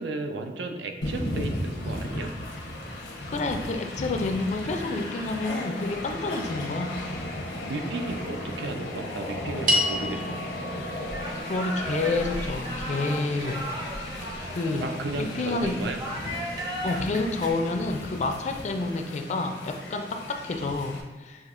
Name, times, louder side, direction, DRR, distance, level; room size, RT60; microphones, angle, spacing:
voice 1, 0.0-2.3 7.7-10.4 14.8-16.0, right 2 dB, 80° right, 5 dB, 0.5 m, -34 dB
Train, 1.0-21.0, left 1 dB, 85° left, 0.7 m, -35 dB
voice 2, 3.3-7.0 11.5-13.6 14.5-14.9 15.2-15.7 16.8-21.5, left 3 dB, 40° left, 4 dB, 0.4 m, -29 dB
sound 1, 9.7-14.1, equal, 50° right, 0.9 m, -32 dB
sound 2, 11.1-17.5, equal, 25° right, 0.6 m, -36 dB
6.4 x 2.8 x 2.5 m, 1.2 s
head